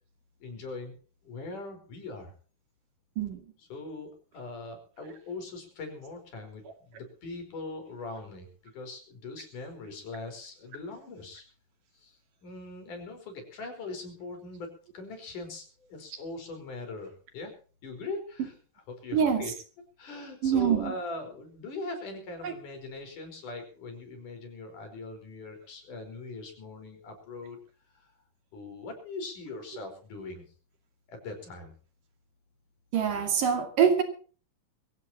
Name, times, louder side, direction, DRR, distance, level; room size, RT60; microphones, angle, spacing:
voice 1, 0.4-1.0 1.2-2.3 3.6-11.4 11.9-17.5 17.8-18.5 18.9-19.5 20.0-27.6 27.9-28.1 28.5-30.4 31.1-31.7, left 3 dB, 65° left, 6.2 m, -41 dB
voice 2, 19.1-19.5 20.4-21.0 22.4-22.5 32.9-34.0, right 7 dB, 70° right, 4.1 m, -25 dB
23.0 x 16.0 x 2.9 m
omnidirectional pair, 3.9 m